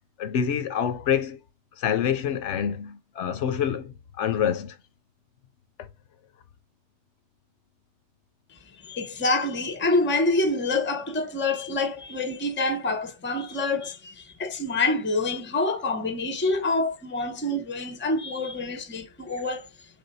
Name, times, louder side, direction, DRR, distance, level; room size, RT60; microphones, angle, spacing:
voice 1, 0.2-1.4 1.8-4.8, left 8 dB, 90° left, 1.0 m, -26 dB
voice 2, 8.5-19.7, left 2 dB, 15° left, 0.5 m, -27 dB
3.6 x 3.5 x 4.0 m
omnidirectional pair, 1.2 m